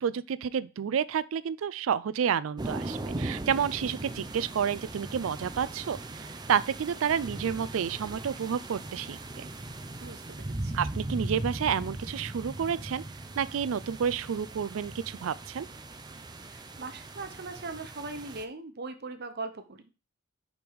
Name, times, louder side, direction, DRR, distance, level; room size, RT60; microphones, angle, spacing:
voice 1, 0.0-9.5 10.7-13.0 13.4-15.7, right 7 dB, 85° right, 0.4 m, -30 dB
sound 1, 2.6-18.4, right 2 dB, 20° right, 0.6 m, -39 dB
voice 2, 10.0-10.8 16.4-19.9, right 3 dB, 55° right, 0.9 m, -40 dB
5.2 x 5.2 x 4.7 m
head